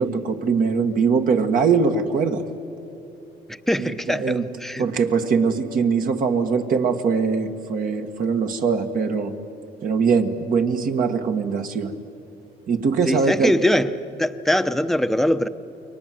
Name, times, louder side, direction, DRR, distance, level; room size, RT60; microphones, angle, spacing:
voice 1, 0.0-2.4 3.8-4.4 4.8-9.3 9.8-11.9 12.7-13.5, right 5 dB, 55° right, 5 dB, 1.7 m, -22 dB
voice 2, 3.7-4.9 13.1-13.9 14.2-15.5, left 1 dB, ahead, 10 dB, 0.9 m, -22 dB
29.0 x 23.0 x 7.7 m, 2.8 s
cardioid pair, 110°, 17 cm